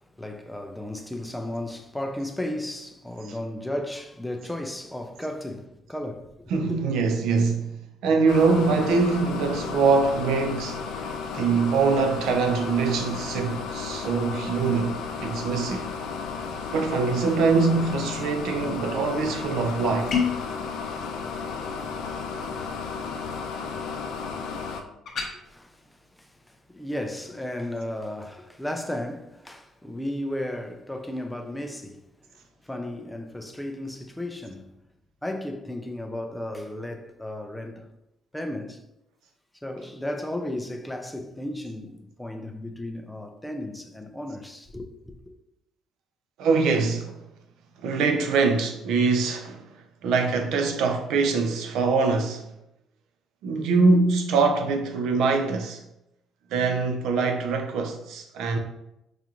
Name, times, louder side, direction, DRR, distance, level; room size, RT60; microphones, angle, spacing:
voice 1, 0.2-6.7 25.3-32.0 32.6-34.7 35.2-37.9 38.3-38.8 39.6-45.1, left 1 dB, 5° left, 0.4 m, -34 dB
voice 2, 6.5-7.8 8.0-15.9 16.7-20.2 46.4-47.2 47.8-49.7 50.0-52.5 53.4-55.8 56.5-58.6, right 4 dB, 80° right, 0.6 m, -23 dB
sound 1, 8.3-24.8, left 5 dB, 80° left, 0.4 m, -33 dB
sound 2, 20.1-20.5 25.1-25.3, left 6 dB, 45° left, 0.7 m, -25 dB
4.9 x 2.4 x 2.9 m
cardioid pair, 135°, 0 cm